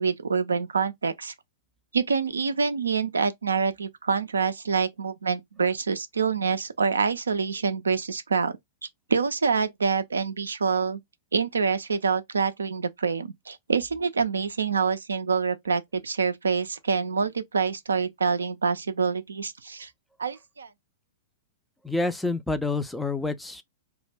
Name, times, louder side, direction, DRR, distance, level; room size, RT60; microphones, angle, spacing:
voice 1, 0.0-1.3 1.9-8.5 9.1-11.0 11.3-19.9 20.2-20.7, right 5 dB, 80° right, 0.3 m, -26 dB
voice 2, 21.8-23.6, left 3 dB, 5° left, 0.3 m, -28 dB
2.2 x 2.0 x 3.3 m
figure-of-eight pair, 105°, 0 cm